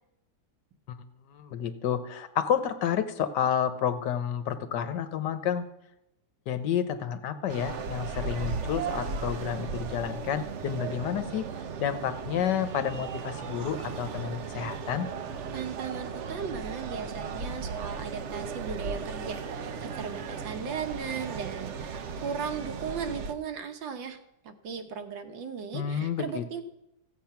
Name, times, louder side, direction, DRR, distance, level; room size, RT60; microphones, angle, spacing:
voice 1, 1.3-5.6 6.5-11.4 11.8-15.1 25.7-26.6, left 8 dB, 70° left, 10 dB, 1.4 m, -30 dB
sound 1, 7.5-23.3, right 5 dB, 60° right, 0.8 m, -36 dB
voice 2, 15.5-24.2 24.4-26.6, right 6 dB, 80° right, 7 dB, 1.8 m, -37 dB
15.0 x 7.9 x 5.8 m, 0.87 s
omnidirectional pair, 2.0 m